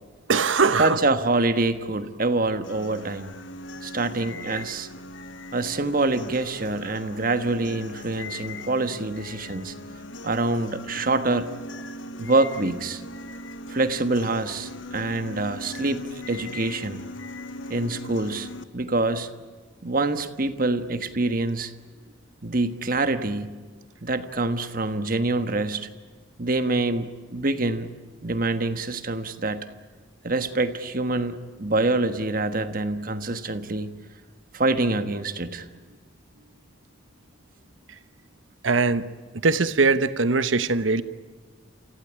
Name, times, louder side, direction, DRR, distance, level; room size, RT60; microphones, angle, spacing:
voice 1, 0.3-1.0 37.9-38.0 38.6-39.1 39.3-41.0, right 4 dB, 90° right, 13 dB, 1.1 m, -21 dB
voice 2, 0.8-3.3 3.8-4.9 5.5-9.7 10.2-11.5 12.2-13.0 13.7-17.0 17.7-19.3 19.8-21.7 22.4-23.5 24.0-25.9 26.4-27.9 28.2-29.7 30.2-34.0 34.5-35.7, right 2 dB, 50° right, 9 dB, 1.4 m, -25 dB
sound 1, 2.6-18.6, left 2 dB, 80° left, 1.1 m, -39 dB
29.0 x 16.0 x 10.0 m, 1.4 s
head